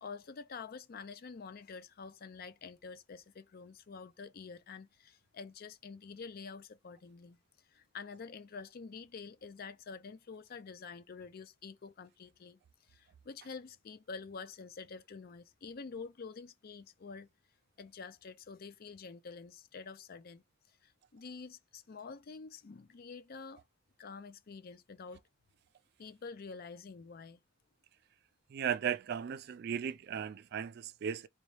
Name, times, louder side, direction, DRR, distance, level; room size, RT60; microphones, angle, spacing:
voice 1, 0.0-7.4 7.7-12.6 12.9-17.3 17.8-20.4 20.8-23.6 24.0-25.2 26.0-27.4, left 5 dB, 50° left, 0.4 m, -48 dB
voice 2, 28.5-31.3, right 8 dB, 50° right, 0.3 m, -36 dB
4.0 x 2.3 x 3.1 m
head